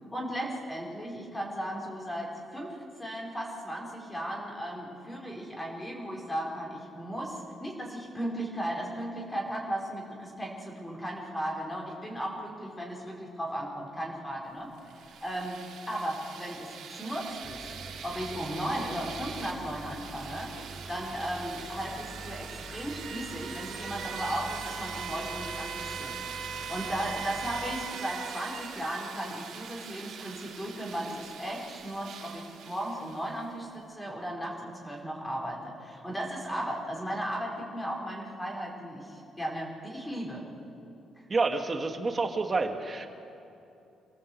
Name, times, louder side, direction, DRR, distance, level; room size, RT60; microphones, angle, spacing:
voice 1, 0.1-14.7 15.2-15.6 15.9-17.7 18.0-20.5 20.9-40.4 41.2-41.3, equal, 15° left, -2 dB, 5.0 m, -36 dB
sound 1, 14.8-33.5, right 7 dB, 80° right, 2.7 m, -41 dB
sound 2, 17.4-27.9, right 2 dB, 15° right, 4.3 m, -46 dB
voice 2, 41.3-43.1, right 3 dB, 30° right, 4 dB, 2.3 m, -28 dB
27.0 x 17.0 x 8.1 m, 2.7 s
cardioid pair, 90°, 0 cm